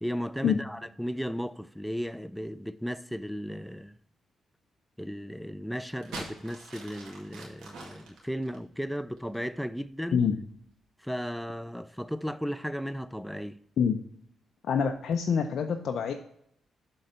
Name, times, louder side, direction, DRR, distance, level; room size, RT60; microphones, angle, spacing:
voice 1, 0.0-3.9 5.0-10.3 11.0-13.6, equal, ahead, 0.4 m, -35 dB
sound 1, 5.9-9.5 10.3-10.7, right 2 dB, 90° right, 1.9 m, -44 dB
voice 2, 14.6-16.1, left 7 dB, 65° left, 0.5 m, -26 dB
7.5 x 3.9 x 5.4 m
cardioid pair, 80°, 0 cm